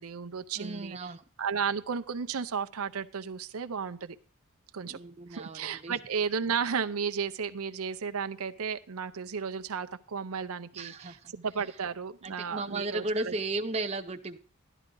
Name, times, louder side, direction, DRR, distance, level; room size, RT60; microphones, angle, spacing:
voice 1, 0.0-4.2 4.7-5.0 5.3-13.4, right 6 dB, 80° right, 8 dB, 0.6 m, -34 dB
voice 2, 0.6-1.2 4.9-5.9 10.7-11.1 12.2-14.4, right 2 dB, 30° right, 6 dB, 0.6 m, -35 dB
13.0 x 11.0 x 3.8 m, 0.38 s
head